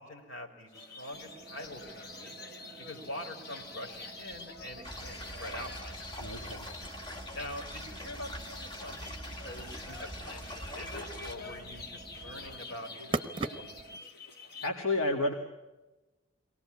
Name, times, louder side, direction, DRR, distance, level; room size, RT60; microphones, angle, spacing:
voice 1, 0.0-2.3 2.8-6.1 7.3-13.7 14.0-14.1, left 1 dB, 70° left, 2 dB, 4.7 m, -45 dB
sound 1, 0.7-14.7, left 3 dB, 50° left, 1.6 m, -47 dB
sound 2, 1.1-14.0, right 3 dB, 25° right, 0.9 m, -45 dB
sound 3, 4.8-11.4, equal, 20° left, 1.6 m, -43 dB
voice 2, 6.2-6.7 14.6-15.3, left 2 dB, 85° left, 2 dB, 2.0 m, -30 dB
23.5 x 18.5 x 8.6 m, 1.1 s
head